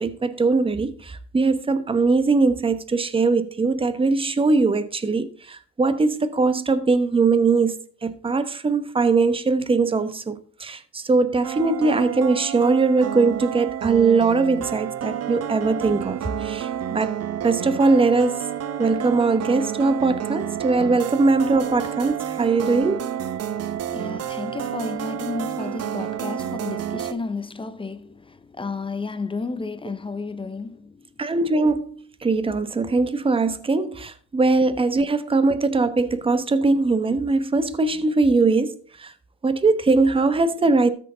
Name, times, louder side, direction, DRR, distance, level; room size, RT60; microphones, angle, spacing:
voice 1, 0.0-7.7 8.0-17.1 17.4-18.4 18.8-23.0 31.2-38.7 39.0-39.1 39.4-40.9, right 3 dB, 15° right, 1.0 m, -21 dB
sound 1, 11.4-27.1, right 9 dB, 40° right, 1.1 m, -30 dB
voice 2, 23.5-31.1 35.5-35.6, left 3 dB, 15° left, 0.8 m, -32 dB
13.5 x 6.6 x 3.9 m
supercardioid pair, 105°, 38 cm